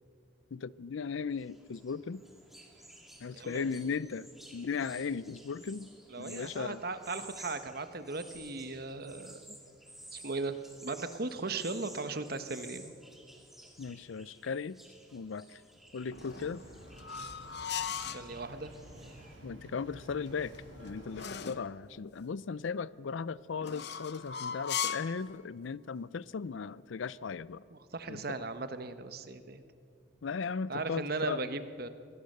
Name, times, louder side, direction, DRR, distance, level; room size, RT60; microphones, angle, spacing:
voice 1, 0.5-2.2 3.2-6.8 13.8-14.8 15.1-15.6 15.9-16.6 19.4-27.6 28.1-28.4 30.2-31.4, left 5 dB, 75° left, 20 dB, 0.5 m, -37 dB
sound 1, 1.0-19.3, right 1 dB, ahead, 2.4 m, -54 dB
voice 2, 3.3-3.7 6.1-9.6 10.1-10.6 10.8-12.9 18.0-18.7 27.7-29.6 30.7-31.9, right 3 dB, 50° right, 10 dB, 1.1 m, -37 dB
Bird vocalization bird call bird song, 16.0-21.3, right 1 dB, 80° right, 5.4 m, -52 dB
sound 2, 16.1-18.3 20.3-21.7 23.6-25.2, left 8 dB, 55° left, 0.9 m, -38 dB
23.5 x 17.0 x 6.7 m, 2.4 s
head